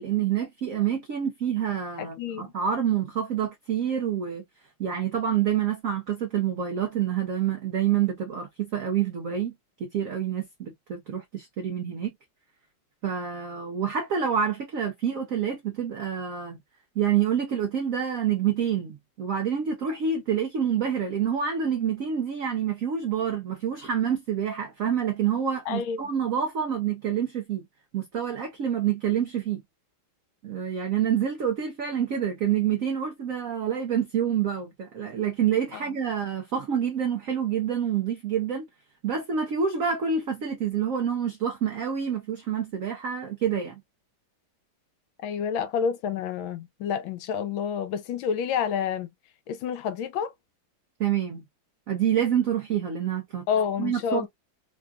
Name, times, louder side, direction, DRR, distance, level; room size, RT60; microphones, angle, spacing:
voice 1, 0.0-4.4 4.8-9.5 9.8-12.1 13.0-16.6 17.0-27.6 27.9-29.6 30.4-38.6 39.0-43.8 51.0-51.4 51.9-53.4 53.8-54.3, right 8 dB, 75° right, 0.7 m, -27 dB
voice 2, 2.0-2.5 25.7-26.0 35.7-35.8 45.2-49.1 49.5-50.3 53.5-54.3, left 7 dB, 85° left, 1.4 m, -29 dB
3.7 x 2.3 x 2.3 m
omnidirectional pair, 2.2 m